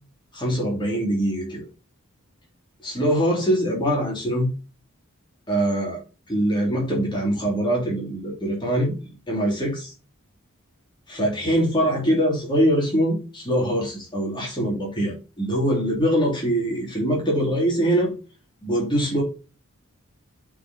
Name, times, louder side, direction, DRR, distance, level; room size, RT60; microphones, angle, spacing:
voice 1, 0.3-1.6 2.8-4.5 5.5-6.0 6.3-8.9 9.3-9.9 11.1-18.1 18.6-19.2, equal, 20° left, -2 dB, 3.2 m, -23 dB
8.2 x 5.1 x 4.3 m, 0.31 s
head